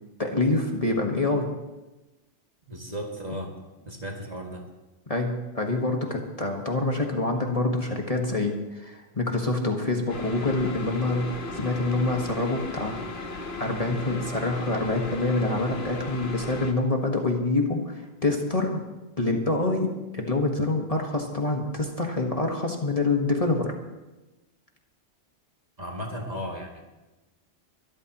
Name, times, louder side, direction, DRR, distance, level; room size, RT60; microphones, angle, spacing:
voice 1, 0.2-1.5 5.1-18.8 19.2-23.7, left 2 dB, 30° left, 1 dB, 1.5 m, -26 dB
voice 2, 2.7-3.5 3.8-4.7 25.8-26.8, equal, 35° right, -1 dB, 2.2 m, -35 dB
sound 1, 10.1-16.7, left 3 dB, 60° left, 1.5 m, -36 dB
24.0 x 13.0 x 3.0 m, 1.1 s
omnidirectional pair, 1.2 m